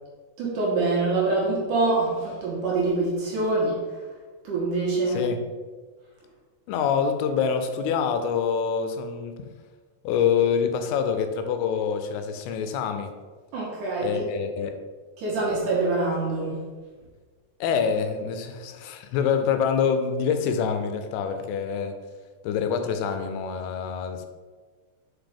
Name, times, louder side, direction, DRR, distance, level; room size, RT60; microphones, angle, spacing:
voice 1, 0.4-4.0 4.4-5.2 13.5-14.3 15.2-16.7, right 3 dB, 65° right, -5 dB, 2.3 m, -25 dB
voice 2, 5.1-5.5 6.7-9.4 10.0-13.1 14.0-14.8 17.6-22.0 22.4-24.3, left 7 dB, 85° left, 7 dB, 2.5 m, -26 dB
5.9 x 5.2 x 3.5 m, 1.4 s
omnidirectional pair, 4.6 m